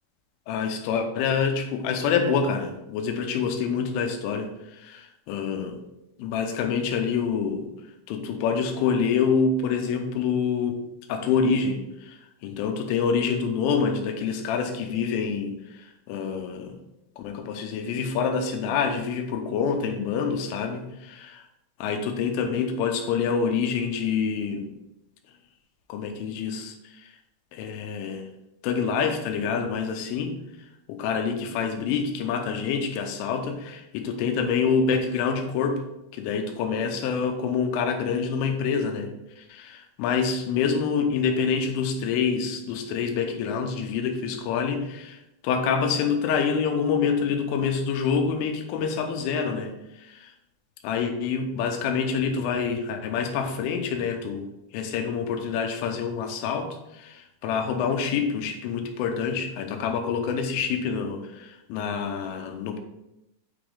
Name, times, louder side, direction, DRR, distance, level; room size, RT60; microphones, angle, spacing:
voice 1, 0.5-5.8 6.2-7.7 8.1-10.8 11.1-16.8 17.2-21.5 21.8-24.7 25.9-27.1 27.5-28.3 28.6-30.4 30.9-35.8 36.1-39.1 39.4-50.3 50.8-54.4 54.7-62.8, left 6 dB, 90° left, 5 dB, 3.3 m, -27 dB
8.8 x 5.1 x 3.7 m, 0.89 s
omnidirectional pair, 5.6 m